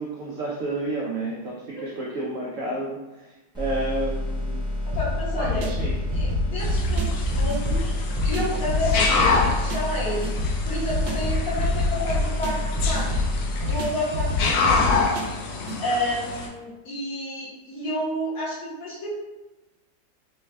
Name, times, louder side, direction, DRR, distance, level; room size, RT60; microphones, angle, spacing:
voice 1, 0.0-4.6 5.4-6.0 14.4-14.7, right 2 dB, 70° right, -4 dB, 0.7 m, -31 dB
sound 1, 3.5-13.6, left 1 dB, 5° right, 0.4 m, -29 dB
voice 2, 4.9-5.7 6.1-7.9 8.2-10.2 10.6-13.2 13.6-15.3 15.8-19.1, left 1 dB, 60° left, -7 dB, 1.5 m, -30 dB
sound 2, 4.9-15.8, left 2 dB, 85° right, 1.3 m, -28 dB
sound 3, 6.6-16.5, left 3 dB, 75° left, 1.1 m, -27 dB
4.2 x 2.3 x 3.2 m, 1.1 s
omnidirectional pair, 1.9 m